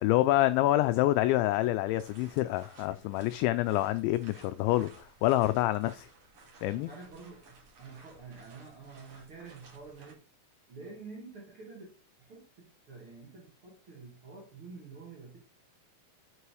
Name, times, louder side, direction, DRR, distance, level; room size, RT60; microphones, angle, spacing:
voice 1, 0.0-6.1 6.6-6.9, left 15 dB, 85° left, 2.6 m, -27 dB
sound 1, 1.9-10.1, right 3 dB, 45° right, 2.5 m, -57 dB
voice 2, 6.7-10.2 10.7-15.4, right 4 dB, 80° right, 1.2 m, -48 dB
9.8 x 5.5 x 4.8 m
omnidirectional pair, 5.8 m